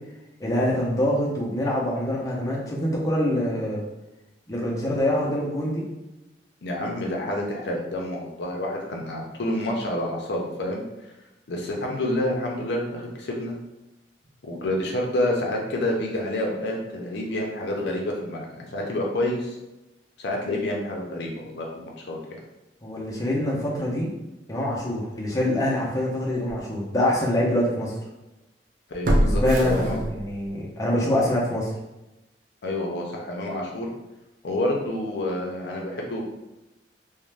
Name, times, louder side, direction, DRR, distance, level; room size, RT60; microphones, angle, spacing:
voice 1, 0.4-3.8 4.5-5.8 22.8-24.1 24.5-27.9 29.1-31.7, left 1 dB, 20° left, -4 dB, 0.5 m, -25 dB
voice 2, 6.6-10.8 11.5-13.6 14.4-19.5 20.2-22.2 28.9-30.0 32.6-33.9 34.4-36.2, left 1 dB, 70° left, 0 dB, 0.5 m, -28 dB
sound 1, 25.8-25.9 26.5-26.6 29.0-30.5 30.9-31.0, equal, 50° right, 0.4 m, -24 dB
2.5 x 2.1 x 3.1 m, 0.99 s
head